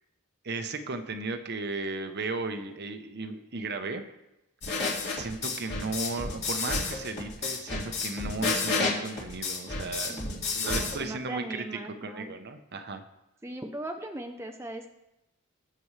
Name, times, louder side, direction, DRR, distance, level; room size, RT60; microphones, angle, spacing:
voice 1, 0.4-4.0 5.1-13.0, right 3 dB, 50° right, 8 dB, 0.9 m, -35 dB
sound 1, 4.6-11.0, left 3 dB, 50° left, 2.3 m, -30 dB
voice 2, 10.1-12.3 13.4-14.9, right 1 dB, 10° right, 4 dB, 0.6 m, -39 dB
19.5 x 6.9 x 3.3 m, 0.92 s
head